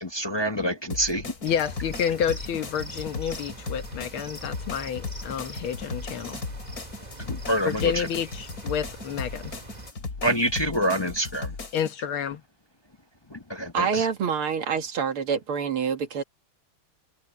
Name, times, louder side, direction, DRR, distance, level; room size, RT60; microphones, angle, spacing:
voice 1, 0.0-1.3 7.2-8.1 10.2-11.5 13.3-14.1, equal, 20° left, 0.8 m, -27 dB
sound 1, 0.9-11.9, left 3 dB, 45° left, 3.1 m, -37 dB
voice 2, 1.4-6.4 7.7-9.5 11.7-12.4, left 8 dB, 80° left, 2.0 m, -29 dB
sound 2, 1.4-9.9, right 1 dB, 20° right, 2.3 m, -43 dB
voice 3, 13.7-16.2, right 6 dB, 85° right, 2.6 m, -26 dB
omnidirectional pair, 2.3 m